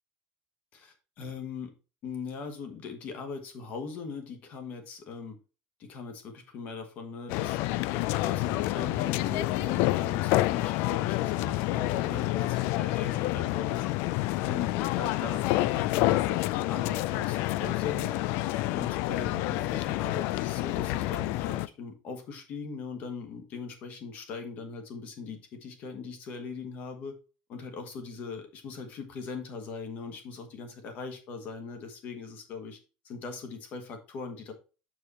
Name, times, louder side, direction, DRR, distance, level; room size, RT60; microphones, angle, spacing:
voice 1, 0.7-1.7 2.0-5.4 5.8-13.9 14.1-14.2 14.5-27.1 27.5-32.8 33.0-34.5, left 4 dB, 40° left, 6 dB, 1.4 m, -40 dB
sound 1, 7.3-21.7, left 17 dB, 60° left, 0.3 m, -28 dB
6.9 x 4.7 x 4.3 m, 0.34 s
cardioid pair, 180°, 4 cm